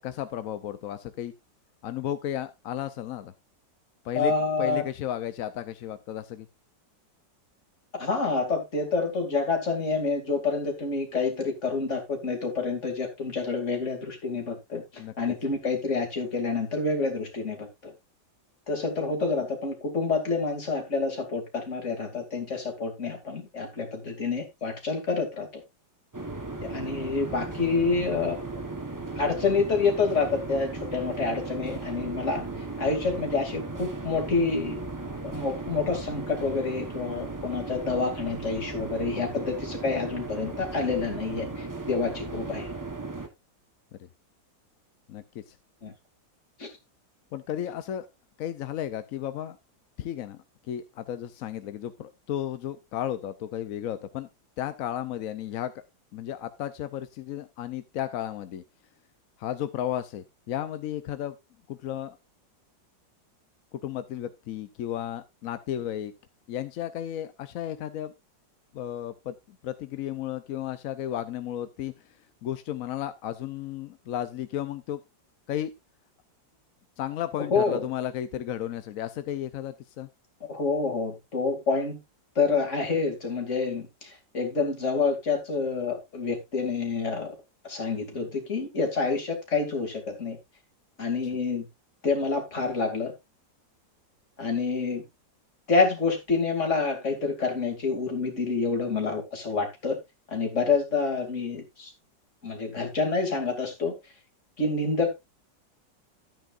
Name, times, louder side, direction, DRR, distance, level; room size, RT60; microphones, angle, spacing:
voice 1, 0.0-1.3 1.8-3.3 4.0-4.3 4.6-6.5 15.0-15.3 45.1-45.5 47.3-48.1 48.4-49.6 50.0-50.4 50.7-54.3 54.6-55.7 56.1-58.6 59.4-61.3 61.7-62.2 63.8-66.1 66.5-68.1 68.7-69.3 69.6-71.9 72.4-75.0 75.5-75.7 77.0-80.1, left 11 dB, 65° left, 11 dB, 0.8 m, -33 dB
voice 2, 4.1-4.9 7.9-17.9 18.7-25.6 26.6-28.5 29.2-32.4 32.8-34.8 35.2-42.7 45.8-45.9 46.6-46.7 77.5-77.8 80.5-82.0 82.4-87.3 87.6-90.4 91.0-91.7 92.0-93.1 94.4-95.0 95.7-100.0 100.3-101.9 102.4-103.9 104.6-105.1, left 4 dB, 40° left, 3 dB, 2.8 m, -28 dB
sound 1, 26.1-43.3, right 3 dB, 15° right, 0.8 m, -36 dB
12.5 x 9.1 x 2.5 m, 0.22 s
omnidirectional pair, 2.0 m